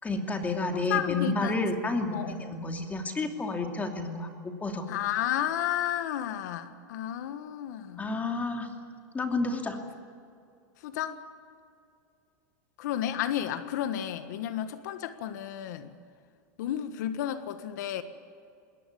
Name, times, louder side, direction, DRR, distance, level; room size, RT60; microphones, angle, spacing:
voice 1, 0.0-4.9 8.0-8.7 9.1-9.8, left 3 dB, 15° left, 4 dB, 2.7 m, -30 dB
voice 2, 0.9-1.6 2.1-2.3 4.9-8.1 10.8-11.2 12.8-15.9 16.6-18.0, left 11 dB, 70° left, 10 dB, 1.4 m, -32 dB
21.5 x 18.5 x 8.5 m, 2.4 s
supercardioid pair, 125°, 10 cm